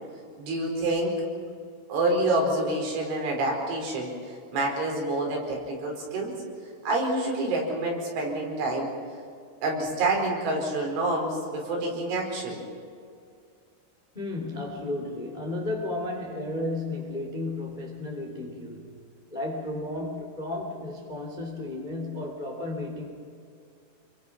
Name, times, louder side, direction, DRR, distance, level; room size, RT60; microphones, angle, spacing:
voice 1, 0.4-1.2 1.9-4.1 4.5-6.3 6.8-8.9 9.6-12.6, right 2 dB, 70° right, 0 dB, 7.0 m, -27 dB
voice 2, 14.1-19.0 19.3-23.1, left 2 dB, 15° left, 1 dB, 1.9 m, -33 dB
28.5 x 23.0 x 6.0 m, 2.3 s
omnidirectional pair, 5.6 m